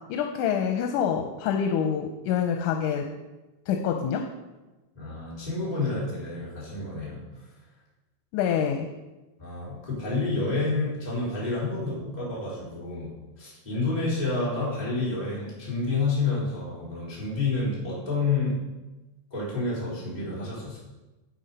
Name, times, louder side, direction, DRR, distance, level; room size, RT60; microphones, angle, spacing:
voice 1, 0.1-3.1 3.7-4.3 8.3-8.9, left 8 dB, 90° left, 4 dB, 2.3 m, -26 dB
voice 2, 5.0-7.2 9.4-18.6 19.3-20.8, left 3 dB, 15° left, -8 dB, 3.4 m, -29 dB
8.2 x 8.1 x 5.3 m, 1.1 s
omnidirectional pair, 3.5 m